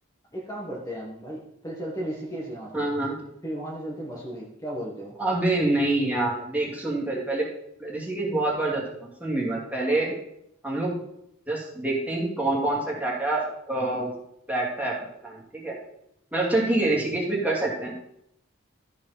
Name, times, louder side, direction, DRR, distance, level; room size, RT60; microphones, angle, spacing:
voice 1, 0.3-2.9 3.4-5.2, right 1 dB, 15° left, -4 dB, 1.6 m, -35 dB
voice 2, 2.7-3.1 5.2-7.5 7.8-10.1 10.6-11.0 11.5-14.1 14.5-15.8 16.3-18.1, right 2 dB, 5° right, -4 dB, 2.6 m, -26 dB
13.5 x 5.1 x 5.8 m, 0.78 s
head